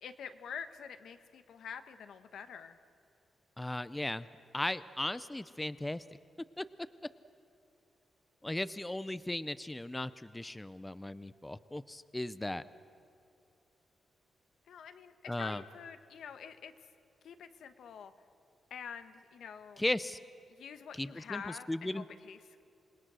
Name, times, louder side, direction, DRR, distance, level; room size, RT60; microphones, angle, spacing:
voice 1, 0.0-2.8 14.7-16.7 17.2-18.1 18.7-19.8 20.5-22.6, left 7 dB, 80° left, 9 dB, 1.2 m, -46 dB
voice 2, 3.6-4.3 4.5-6.0 6.6-6.7 8.4-12.6 15.3-15.6 19.8-20.2 21.0-21.4 21.7-22.0, left 1 dB, 10° left, 15 dB, 0.5 m, -36 dB
27.0 x 20.0 x 6.3 m, 2.6 s
cardioid pair, 105°, 0 cm